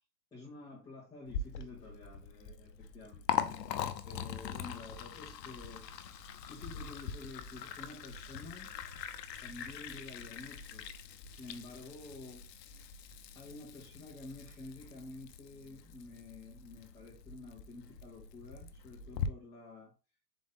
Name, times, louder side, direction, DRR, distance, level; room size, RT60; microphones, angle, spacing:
voice 1, 0.3-3.3 3.7-8.7 9.4-10.9 11.3-12.5 13.3-19.9, left 3 dB, 5° left, -9 dB, 1.2 m, -50 dB
Liquid, 1.3-19.3, left 8 dB, 75° left, 0.8 m, -42 dB
4.2 x 3.5 x 3.6 m, 0.33 s
hypercardioid pair, 155°, 50 cm